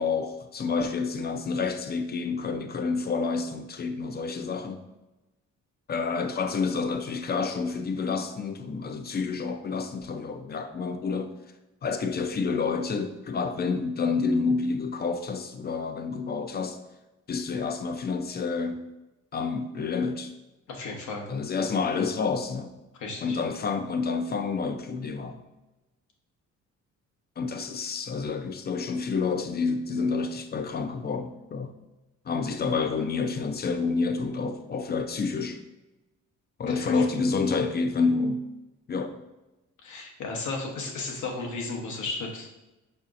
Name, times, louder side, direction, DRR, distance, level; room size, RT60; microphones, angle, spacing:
voice 1, 0.0-4.8 5.9-11.3 11.8-16.8 17.3-18.9 19.3-20.3 21.3-22.7 23.2-25.5 27.4-31.7 32.3-35.6 36.6-38.5 38.9-39.2, left 4 dB, 35° left, 0.5 m, -29 dB
voice 2, 20.7-21.3 23.0-23.4 36.7-37.0 39.8-42.5, left 3 dB, 75° left, 1.0 m, -34 dB
4.9 x 4.3 x 2.5 m
cardioid pair, 90°, 30 cm